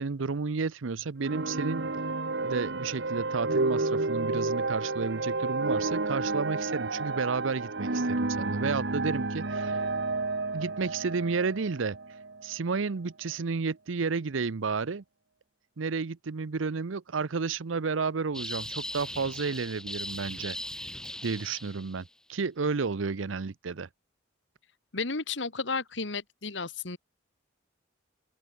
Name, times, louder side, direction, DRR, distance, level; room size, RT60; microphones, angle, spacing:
voice 1, 0.0-1.9 2.4-9.8 10.5-12.0 12.4-15.0 15.8-20.6 21.2-23.9, right 4 dB, 85° right, 0.7 m, -31 dB
sound 1, 1.2-12.5, right 3 dB, 60° right, 1.4 m, -31 dB
sound 2, 18.3-22.0, left 1 dB, 5° left, 2.5 m, -39 dB
voice 2, 24.9-27.0, left 4 dB, 70° left, 1.8 m, -33 dB
open air
head